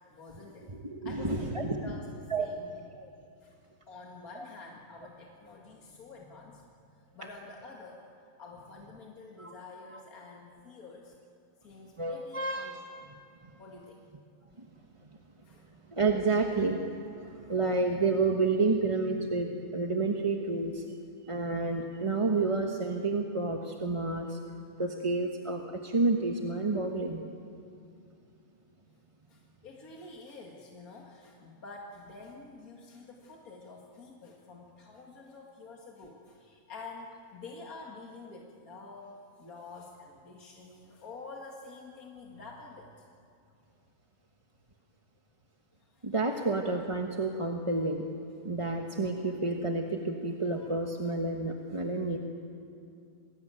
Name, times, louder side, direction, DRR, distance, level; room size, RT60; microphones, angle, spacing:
voice 1, 0.1-0.7 1.0-2.1 2.4-2.8 3.4-3.5 3.9-6.7 7.1-8.0 8.4-11.1 11.6-12.8 13.6-14.0 15.4-15.7 29.3-43.1 45.9-46.4 50.5-50.7, left 3 dB, 75° left, -1 dB, 2.4 m, -48 dB
voice 2, 0.8-1.9 2.3-2.5 4.4-4.5 9.4-9.5 12.0-12.7 15.9-16.8 17.2-20.8 21.2-24.4 24.8-27.2 46.0-48.0 48.4-52.2, right 3 dB, 25° right, 2 dB, 1.2 m, -30 dB
28.0 x 20.0 x 9.0 m, 2.5 s
omnidirectional pair, 1.5 m